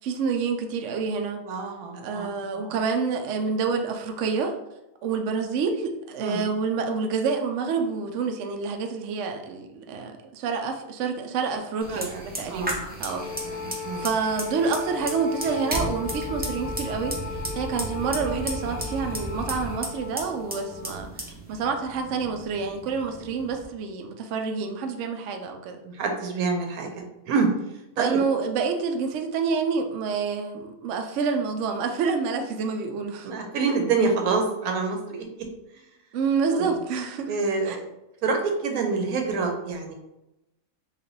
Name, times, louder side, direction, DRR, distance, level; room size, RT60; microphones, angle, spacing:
voice 1, 0.0-1.4 1.9-4.5 5.0-13.3 14.0-25.8 28.0-33.3 36.1-37.4 37.6-37.8, right 5 dB, 65° right, 5 dB, 0.8 m, -28 dB
voice 2, 1.4-2.3 2.6-2.7 6.2-6.4 11.9-12.0 12.5-12.8 13.5-14.1 25.8-27.5 28.0-28.2 33.2-35.2 36.5-36.7 37.3-37.9 38.2-39.9, right 4 dB, 90° right, 3 dB, 1.2 m, -27 dB
Fire, 11.8-23.6, right 1 dB, 15° right, 0.3 m, -35 dB
Wind instrument woodwind instrument, 13.1-21.1, left 6 dB, 85° left, 1.1 m, -37 dB
3.2 x 2.5 x 4.0 m, 0.92 s
omnidirectional pair, 1.5 m